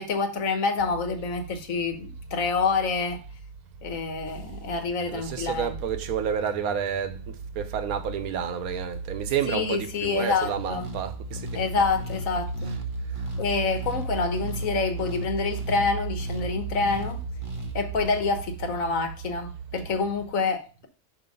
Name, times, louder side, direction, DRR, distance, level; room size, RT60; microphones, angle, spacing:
voice 1, 0.0-3.2 3.8-5.8 9.5-10.9 11.5-12.7 13.4-17.2 17.7-20.9, left 4 dB, 60° left, 1.5 m, -27 dB
sound 1, 0.8-20.3, right 5 dB, 85° right, 1.5 m, -37 dB
voice 2, 5.1-11.6, right 8 dB, 70° right, 1.2 m, -30 dB
sound 2, 10.6-18.1, left 3 dB, 25° right, 0.9 m, -39 dB
6.3 x 4.8 x 5.2 m
omnidirectional pair, 1.6 m